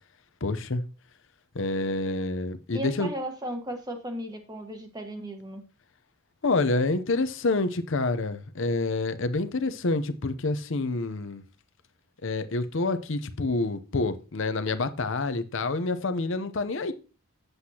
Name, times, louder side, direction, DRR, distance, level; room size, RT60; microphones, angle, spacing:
voice 1, 0.4-0.8 1.5-3.1 6.4-11.4 12.2-16.9, left 3 dB, 60° left, 0.7 m, -27 dB
voice 2, 2.7-5.6, right 1 dB, 20° right, 1.4 m, -35 dB
8.0 x 7.8 x 2.8 m
head